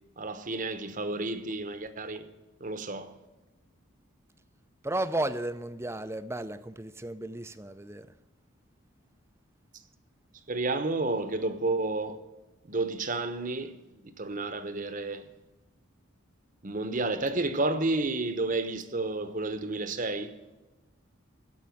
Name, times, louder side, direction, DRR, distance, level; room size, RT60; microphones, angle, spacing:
voice 1, 0.2-2.2 2.6-3.1 10.5-12.2 12.7-13.7 14.0-15.2 16.6-20.3, right 2 dB, 40° right, 1.0 m, -31 dB
voice 2, 4.8-8.1, right 1 dB, 10° right, 0.5 m, -34 dB
15.5 x 5.5 x 9.3 m
head